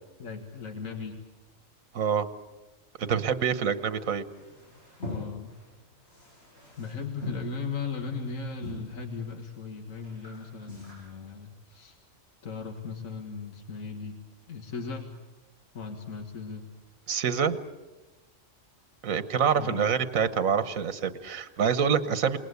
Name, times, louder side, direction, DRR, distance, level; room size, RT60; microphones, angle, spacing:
voice 1, 0.2-1.1 5.0-5.5 6.8-12.0 12.4-14.2 14.5-15.1 15.7-16.7 19.5-20.0, left 5 dB, 80° left, 4 dB, 2.0 m, -37 dB
voice 2, 1.9-2.3 3.0-4.2 17.1-17.6 19.0-22.4, right 7 dB, 90° right, 12 dB, 1.5 m, -26 dB
Male speech man speaking, 4.2-10.9, left 2 dB, 55° left, 7.8 m, -43 dB
28.5 x 19.5 x 8.2 m, 1.1 s
omnidirectional pair, 1.4 m